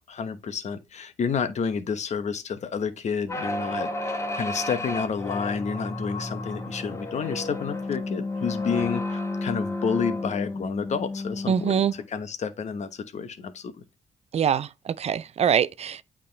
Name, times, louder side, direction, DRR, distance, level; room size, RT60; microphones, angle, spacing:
voice 1, 0.0-13.8, left 6 dB, 60° left, 1.1 m, -30 dB
sound 1, 3.3-12.0, left 2 dB, 20° left, 1.5 m, -32 dB
voice 2, 11.5-11.9 14.3-16.0, right 8 dB, 55° right, 0.5 m, -24 dB
8.4 x 3.7 x 3.3 m
supercardioid pair, 55°, 13 cm